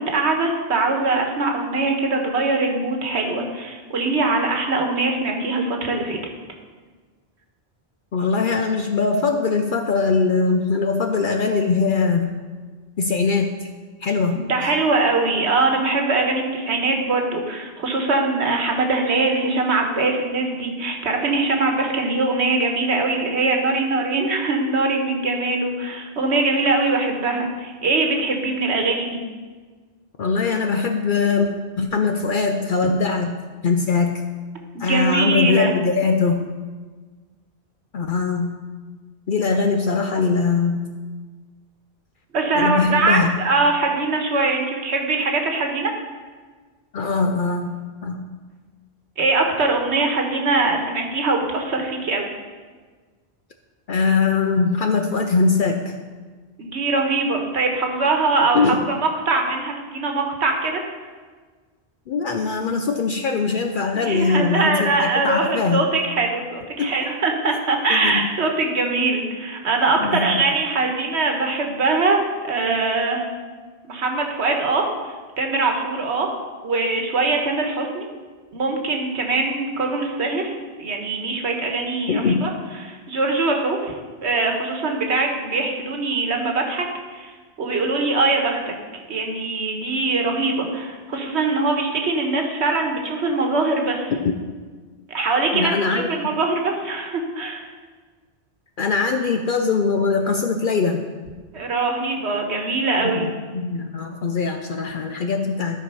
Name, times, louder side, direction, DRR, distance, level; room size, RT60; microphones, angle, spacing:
voice 1, 0.0-6.2 14.3-29.2 34.7-35.7 42.3-45.9 49.2-52.3 56.6-60.8 63.9-73.2 73.8-74.8 75.4-76.3 76.6-78.1 78.5-82.5 82.8-83.9 84.2-86.8 87.1-87.3 87.6-88.7 89.1-94.1 95.1-97.7 101.5-103.3, right 3 dB, 80° right, 3 dB, 1.5 m, -22 dB
voice 2, 8.1-12.3 13.0-13.6 14.0-14.5 30.2-31.5 31.8-34.2 34.8-36.5 37.9-38.6 39.3-40.9 42.5-43.3 46.9-48.3 53.9-55.9 58.5-58.9 62.1-65.9 66.8-66.9 67.9-68.3 70.0-70.4 82.1-82.5 94.2-94.3 95.5-96.1 98.8-101.0 103.0-105.8, left 4 dB, 55° left, 5 dB, 0.7 m, -21 dB
12.0 x 4.7 x 5.5 m, 1.4 s
omnidirectional pair, 1.1 m